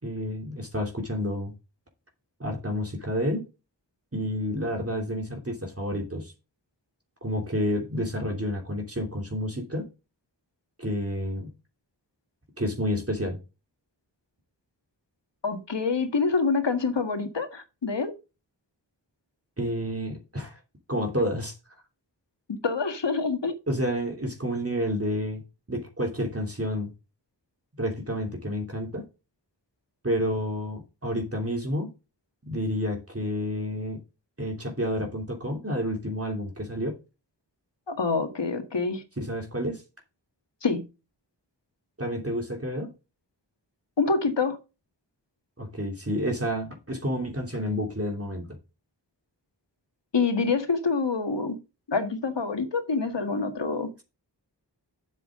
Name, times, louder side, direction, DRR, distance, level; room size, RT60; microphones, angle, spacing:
voice 1, 0.0-1.5 2.4-3.5 4.1-6.3 7.2-9.9 10.8-11.5 12.6-13.4 19.6-20.6 20.9-21.6 23.7-25.4 25.7-26.9 27.8-29.0 30.0-31.9 32.5-34.0 34.4-36.9 39.2-39.8 42.0-42.9 45.6-48.5, equal, 35° right, 3.0 m, -29 dB
voice 2, 15.4-18.1 22.6-23.5 37.9-39.0 40.6-40.8 44.0-44.6 50.1-51.6 51.9-53.9, left 4 dB, 80° left, 1.8 m, -26 dB
9.5 x 7.5 x 3.7 m
wide cardioid pair, 55°, 42 cm